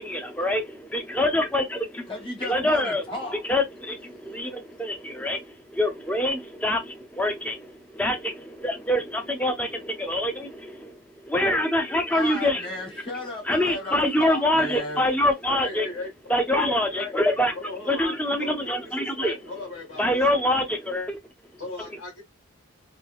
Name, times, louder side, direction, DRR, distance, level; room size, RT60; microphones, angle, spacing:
voice 1, 0.0-2.1 2.4-3.0 3.5-12.7 13.5-15.9 16.3-17.5 17.9-19.4 20.0-21.2, left 1 dB, 5° left, 0.5 m, -25 dB
voice 2, 2.1-3.4 12.1-15.0, left 2 dB, 25° left, 1.2 m, -34 dB
voice 3, 15.5-16.1 16.5-16.6 16.9-17.1 17.5-18.8 19.2-20.2 21.6-22.2, left 3 dB, 75° left, 2.2 m, -36 dB
3.8 x 2.3 x 2.4 m
head